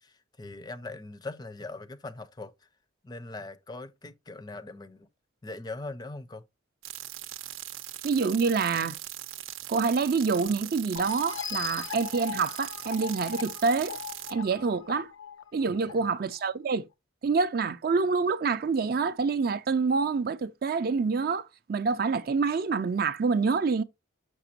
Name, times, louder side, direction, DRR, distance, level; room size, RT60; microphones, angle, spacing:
voice 1, 0.0-2.5 3.0-5.1 5.4-6.4 15.7-16.0, left 2 dB, 20° left, 0.4 m, -41 dB
sound 1, 6.8-14.3, right 13 dB, 85° right, 0.6 m, -40 dB
voice 2, 8.0-9.0 9.7-14.0 14.3-15.1 15.5-16.9 17.2-23.8, right 4 dB, 50° right, 0.4 m, -27 dB
sound 2, 11.0-16.4, left 8 dB, 80° left, 0.6 m, -40 dB
6.7 x 6.0 x 2.8 m
head